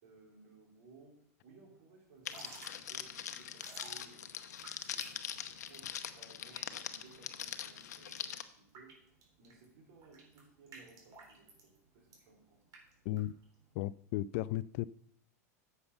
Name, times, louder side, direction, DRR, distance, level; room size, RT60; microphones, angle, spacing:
voice 1, 0.0-4.3 4.7-9.1 9.4-12.6, right 3 dB, 65° right, 4.4 m, -60 dB
Drip / Trickle dribble, 2.1-13.7, right 3 dB, 45° right, 3.7 m, -56 dB
Crackle, 2.3-8.4, left 9 dB, 80° left, 0.8 m, -42 dB
voice 2, 13.7-14.9, left 15 dB, 60° left, 0.4 m, -35 dB
9.5 x 7.0 x 5.7 m
hypercardioid pair, 105°, 9 cm